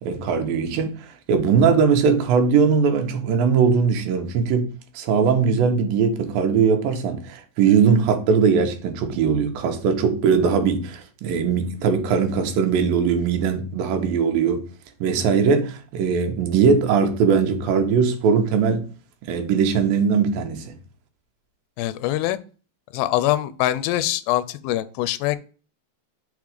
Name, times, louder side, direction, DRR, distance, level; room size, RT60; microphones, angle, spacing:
voice 1, 0.0-4.7 5.0-14.7 15.0-18.9 19.2-20.8, right 6 dB, 75° right, 2.6 m, -20 dB
voice 2, 21.8-22.4 22.9-25.4, left 14 dB, 85° left, 2.4 m, -23 dB
6.0 x 3.6 x 4.9 m
omnidirectional pair, 4.3 m